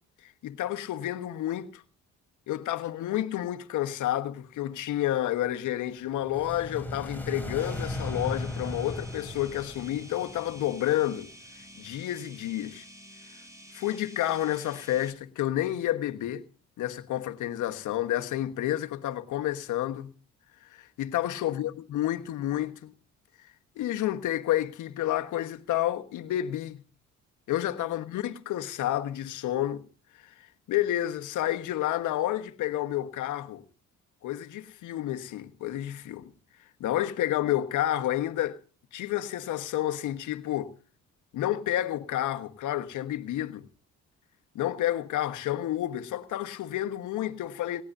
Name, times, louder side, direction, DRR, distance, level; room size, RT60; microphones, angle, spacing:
voice 1, 0.2-1.8 2.5-11.3 11.8-12.8 13.7-16.4 16.8-20.1 20.7-22.9 23.8-26.8 27.5-29.8 30.2-30.3 30.7-33.6 34.2-36.3 36.8-38.6 38.9-40.7 41.3-43.7 44.5-47.8, left 13 dB, 85° left, 1.3 m, -30 dB
sound 1, 6.1-11.2, left 1 dB, 5° left, 3.5 m, -37 dB
sound 2, 7.6-15.1, equal, 10° right, 3.1 m, -50 dB
18.5 x 18.0 x 2.6 m
cardioid pair, 90°, 30 cm